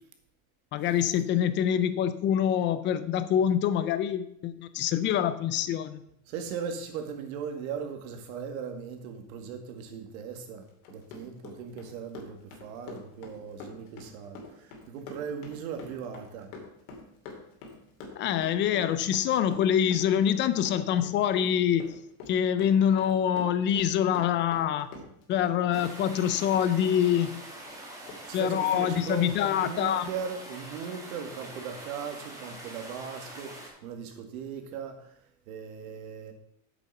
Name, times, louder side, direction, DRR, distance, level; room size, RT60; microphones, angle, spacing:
voice 1, 0.7-6.0 18.1-22.0 22.3-24.9 25.3-27.4 28.3-30.1, left 9 dB, 25° left, 0.5 m, -25 dB
voice 2, 6.3-16.5 28.2-36.3, right 6 dB, 70° right, 2.1 m, -38 dB
Run, 10.7-25.5 25.7-27.3 27.7-27.8 28.1-28.2 28.5-28.6, left 3 dB, 70° left, 2.8 m, -45 dB
sound 1, 25.7-33.7, right 1 dB, 5° right, 2.2 m, -44 dB
8.2 x 7.0 x 5.5 m
supercardioid pair, 145°, 44 cm